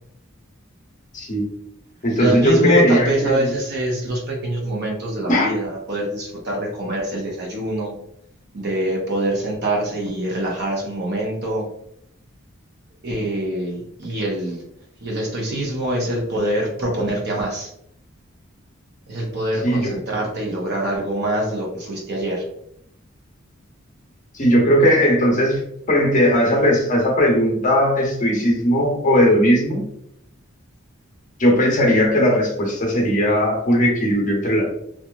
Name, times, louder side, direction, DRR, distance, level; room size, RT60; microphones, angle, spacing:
voice 1, 1.1-1.5 2.0-3.5 5.3-5.5 19.6-20.0 24.3-29.8 31.4-34.8, equal, 40° left, -1 dB, 0.7 m, -18 dB
voice 2, 2.1-8.0 8.5-11.7 13.0-14.6 15.0-17.7 19.1-22.4, right 1 dB, 55° right, -1 dB, 0.7 m, -24 dB
2.8 x 2.3 x 2.3 m, 0.74 s
head